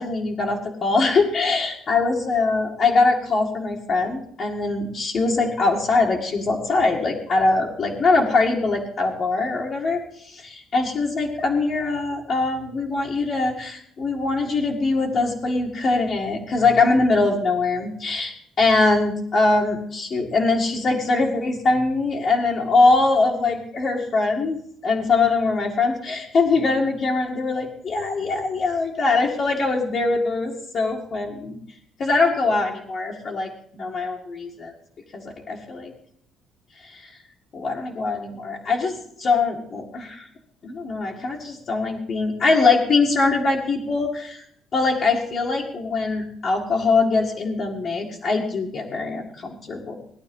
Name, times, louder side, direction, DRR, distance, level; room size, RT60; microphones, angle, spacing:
voice 1, 0.0-10.0 10.4-24.6 24.8-31.6 32.0-34.7 35.1-35.9 36.9-37.1 37.5-40.2 40.6-44.4 44.7-49.9, left 3 dB, 35° left, -3 dB, 2.1 m, -22 dB
17.0 x 11.5 x 5.5 m, 0.66 s
cardioid pair, 175°, 0 cm